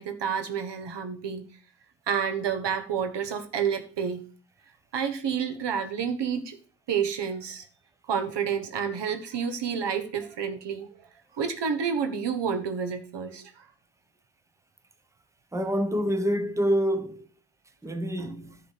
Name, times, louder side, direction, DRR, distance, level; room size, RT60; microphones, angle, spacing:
voice 1, 0.0-1.4 2.1-4.2 4.9-6.6 6.9-7.7 8.1-10.9 11.3-13.7 18.2-18.3, right 7 dB, 90° right, 1.3 m, -29 dB
voice 2, 15.5-17.2 17.8-18.6, equal, 5° right, 0.8 m, -27 dB
10.5 x 3.8 x 6.6 m
wide cardioid pair, 120°, 41 cm